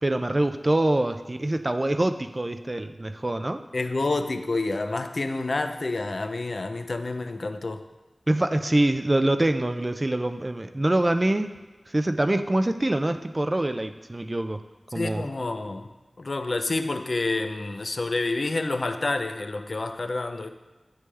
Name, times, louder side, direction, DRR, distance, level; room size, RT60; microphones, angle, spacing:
voice 1, 0.0-3.6 8.3-11.5 11.9-14.6 14.9-15.3, right 1 dB, 30° right, 8 dB, 0.3 m, -25 dB
voice 2, 3.7-7.8 14.9-15.9 16.2-20.5, left 2 dB, 55° left, 8 dB, 0.3 m, -28 dB
9.7 x 3.4 x 3.2 m, 1.2 s
wide cardioid pair, 80°, 0 cm